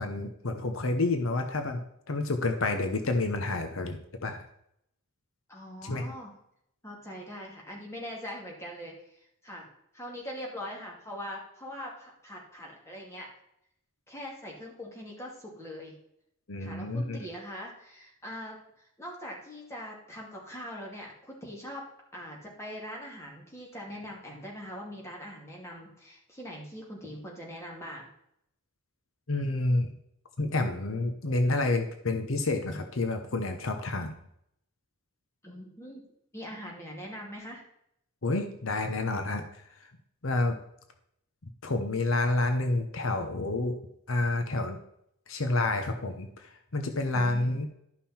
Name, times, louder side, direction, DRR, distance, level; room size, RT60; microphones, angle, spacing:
voice 1, 0.0-4.4 5.8-6.1 16.5-17.2 29.3-30.0 30.4-34.2 38.2-39.6 40.2-40.6 41.6-43.8 44.1-44.8 45.3-47.7, left 2 dB, 75° left, 6 dB, 0.9 m, -29 dB
voice 2, 5.5-6.3 6.8-9.7 9.9-13.3 14.1-15.9 16.6-21.9 22.1-28.0 35.4-36.0 36.3-37.6 47.1-47.7, equal, 15° left, -2 dB, 2.4 m, -42 dB
12.0 x 5.6 x 4.3 m, 0.75 s
head